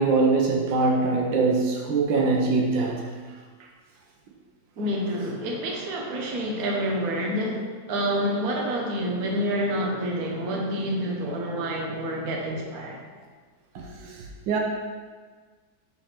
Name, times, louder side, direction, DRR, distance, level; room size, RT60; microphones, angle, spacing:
voice 1, 0.0-3.0 13.7-14.1 14.5-14.6, right 3 dB, 80° right, -1 dB, 1.5 m, -22 dB
voice 2, 4.8-13.0, equal, 55° right, -1 dB, 1.3 m, -28 dB
5.9 x 3.3 x 5.7 m, 1.5 s
omnidirectional pair, 2.0 m